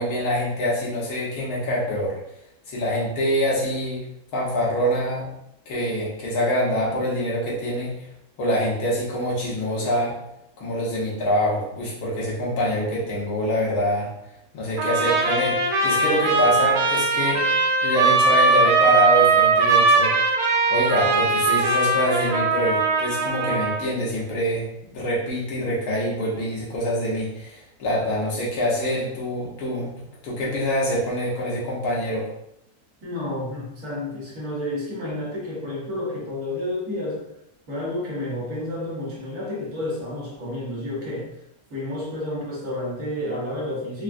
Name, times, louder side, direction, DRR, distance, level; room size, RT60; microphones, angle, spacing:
voice 1, 0.0-2.1 2.7-4.0 4.3-5.3 5.7-7.9 8.4-10.2 10.6-14.1 14.5-17.5 17.8-20.1 20.7-24.7 24.9-32.3, equal, 85° left, -5 dB, 1.5 m, -25 dB
Trumpet, 14.8-23.9, right 3 dB, 90° right, 1.2 m, -20 dB
voice 2, 33.0-37.3 37.7-41.3 41.7-44.0, left 1 dB, 60° right, -5 dB, 1.3 m, -30 dB
3.5 x 2.2 x 2.4 m, 0.80 s
omnidirectional pair, 1.6 m